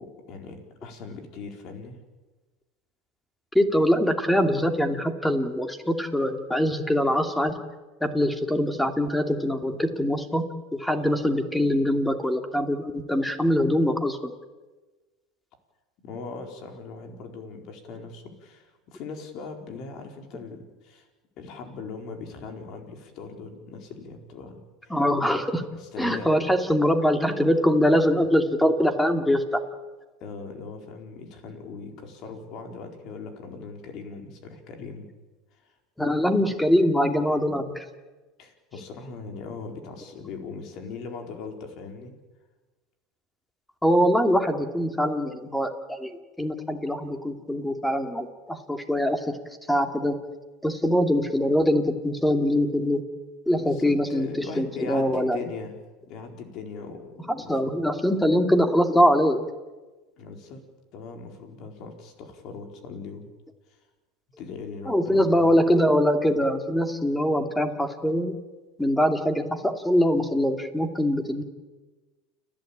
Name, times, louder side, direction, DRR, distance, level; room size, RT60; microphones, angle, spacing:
voice 1, 0.0-2.0 16.0-21.1 21.4-25.0 25.7-26.3 30.2-35.1 35.5-35.7 36.2-36.4 38.4-42.1 53.5-57.8 60.2-60.6 60.9-63.3 64.4-65.6, left 4 dB, 55° left, 4 dB, 4.5 m, -40 dB
voice 2, 3.5-7.5 8.0-10.4 10.7-14.3 24.9-25.7 26.0-29.6 36.0-37.8 43.8-46.1 46.4-49.2 49.7-50.2 50.6-53.0 53.5-55.4 57.3-59.4 64.9-68.3 68.8-71.4, equal, 5° left, 7 dB, 2.6 m, -23 dB
30.0 x 11.5 x 8.9 m, 1.2 s
hypercardioid pair, 95°, 0 cm